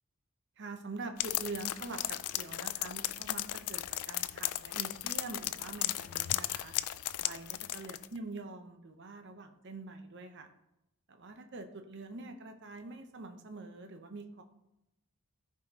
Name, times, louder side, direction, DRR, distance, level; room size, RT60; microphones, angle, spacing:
voice 1, 0.6-6.7 7.2-10.5 11.1-14.4, right 3 dB, 50° right, 6 dB, 0.8 m, -45 dB
sound 1, 1.2-8.1, left 14 dB, 85° left, 0.4 m, -36 dB
14.5 x 4.9 x 2.9 m, 0.88 s
head